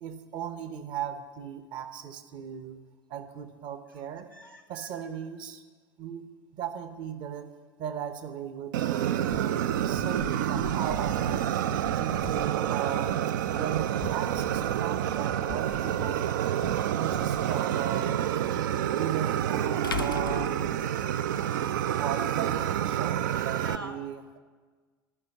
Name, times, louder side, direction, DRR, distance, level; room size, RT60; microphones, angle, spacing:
voice 1, 0.0-2.8 3.1-4.3 4.7-5.6 6.0-7.5 7.8-9.5 9.8-11.5 11.9-16.2 16.9-18.3 18.8-20.8 22.0-24.4, right 9 dB, 45° right, 9 dB, 1.0 m, -37 dB
voice 2, 4.3-4.9 21.0-22.3 23.6-24.0, right 1 dB, 90° right, 3 dB, 0.8 m, -45 dB
Fire, 8.7-23.8, right 10 dB, 65° right, 0.4 m, -28 dB
sound 1, 9.3-16.3 16.6-16.9 17.1-17.6, left 8 dB, 30° left, 0.5 m, -45 dB
sound 2, 16.0-16.1 18.7-18.8 19.8-21.4, left 7 dB, 80° left, 0.4 m, -36 dB
12.0 x 5.8 x 8.3 m, 1.4 s
figure-of-eight pair, 70°, 11 cm